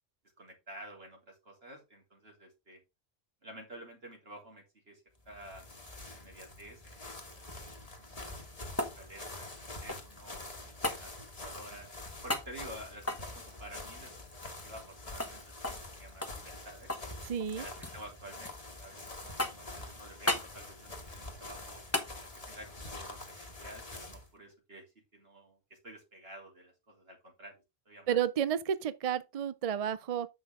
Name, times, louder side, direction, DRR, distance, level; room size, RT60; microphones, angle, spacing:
voice 1, 0.4-2.8 3.4-5.6 6.1-7.9 8.3-8.4 9.0-11.9 12.2-14.2 14.6-15.4 15.7-16.9 17.5-21.8 22.2-24.9 25.1-28.2, right 1 dB, 75° right, 3.4 m, -51 dB
sound 1, 5.2-24.3, left 2 dB, 35° left, 1.6 m, -46 dB
sound 2, 8.2-10.2 10.8-11.0 12.3-12.5 13.0-14.9 15.2-15.3 15.6-15.9 16.2-17.1 17.4-18.0 18.4-19.0 19.4-19.8 20.3-20.5 21.9-22.1 24.5-24.6, left 1 dB, 15° left, 1.2 m, -36 dB
voice 2, 17.3-17.6 28.1-30.3, right 9 dB, 50° right, 0.5 m, -31 dB
7.3 x 6.2 x 3.6 m
omnidirectional pair, 1.0 m